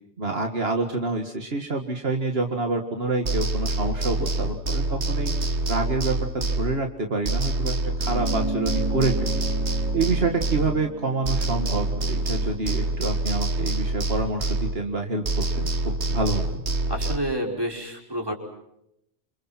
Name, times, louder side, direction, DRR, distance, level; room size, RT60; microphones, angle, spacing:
voice 1, 0.2-5.3 5.7-9.4 9.9-16.4, right 3 dB, 65° right, 4 dB, 2.1 m, -27 dB
sound 1, 3.2-7.0 7.3-11.0 11.3-15.0 15.3-17.2, right 2 dB, 80° right, 2.0 m, -26 dB
sound 2, 8.0-12.8, right 2 dB, 40° right, 7.0 m, -34 dB
voice 2, 16.9-18.3, equal, 20° right, 1 dB, 5.2 m, -29 dB
28.0 x 27.5 x 5.9 m, 0.80 s
omnidirectional pair, 1.1 m